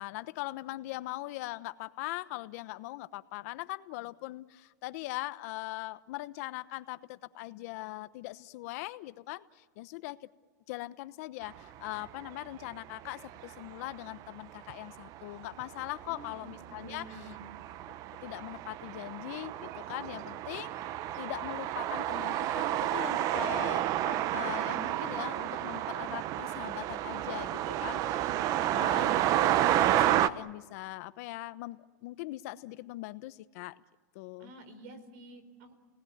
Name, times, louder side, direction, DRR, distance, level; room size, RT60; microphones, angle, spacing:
voice 1, 0.0-10.2 10.7-17.2 18.2-20.8 21.2-28.4 28.8-29.1 29.4-29.5 29.9-33.8 34.1-34.5, left 18 dB, 60° left, 13 dB, 1.0 m, -41 dB
sound 1, 11.9-12.3 12.9-13.9 14.2-14.3 14.7-30.3, right 13 dB, 40° right, 0.8 m, -31 dB
voice 2, 16.1-17.4 28.5-29.1 34.4-35.7, right 1 dB, 60° right, 10 dB, 4.4 m, -49 dB
30.0 x 19.0 x 9.4 m, 1.4 s
supercardioid pair, 145°, 9 cm